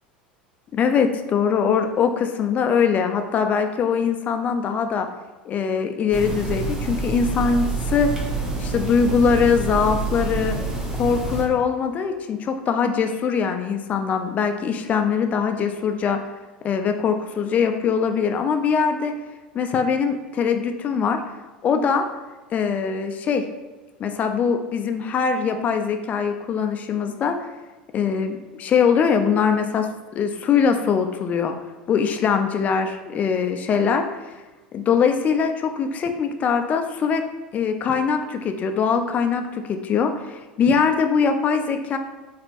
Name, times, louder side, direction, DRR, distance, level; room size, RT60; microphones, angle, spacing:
voice 1, 0.7-5.1 5.5-8.3 8.6-10.6 11.0-16.2 16.6-19.1 19.5-21.2 21.6-22.0 22.5-23.4 24.0-27.4 27.9-29.9 30.1-31.5 31.9-34.0 34.7-37.2 37.5-42.0, left 6 dB, 30° left, 6 dB, 0.3 m, -22 dB
sound 1, 6.1-11.4, right 3 dB, 10° right, 0.9 m, -27 dB
4.2 x 2.5 x 2.9 m, 1.2 s
figure-of-eight pair, 80°, 5 cm